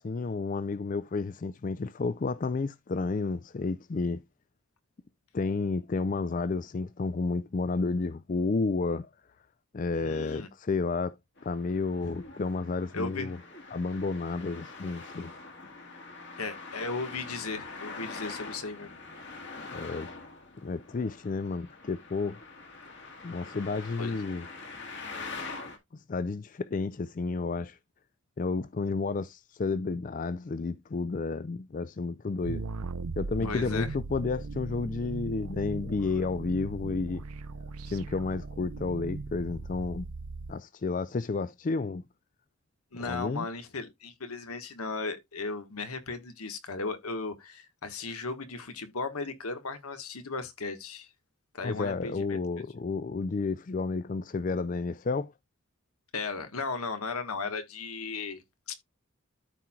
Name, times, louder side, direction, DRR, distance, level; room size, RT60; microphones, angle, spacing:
voice 1, 0.0-4.2 5.3-9.1 9.7-11.1 11.4-13.4 13.7-15.3 19.6-20.1 20.6-22.4 23.2-24.4 25.9-27.8 28.4-32.6 33.2-37.2 37.9-40.1 40.5-42.1 43.0-43.5 51.6-55.3, left 4 dB, 35° left, 0.4 m, -31 dB
voice 2, 9.9-10.5 12.0-12.2 12.9-13.3 16.4-18.9 24.0-24.1 33.4-33.9 42.9-51.1 51.5-52.4 56.1-58.4 58.7-58.8, left 4 dB, 85° left, 1.4 m, -36 dB
Traffic noise roadway noise, 11.4-25.8, left 3 dB, 55° left, 1.7 m, -44 dB
sound 1, 32.4-40.5, right 3 dB, 90° right, 0.6 m, -38 dB
13.0 x 4.4 x 2.3 m
head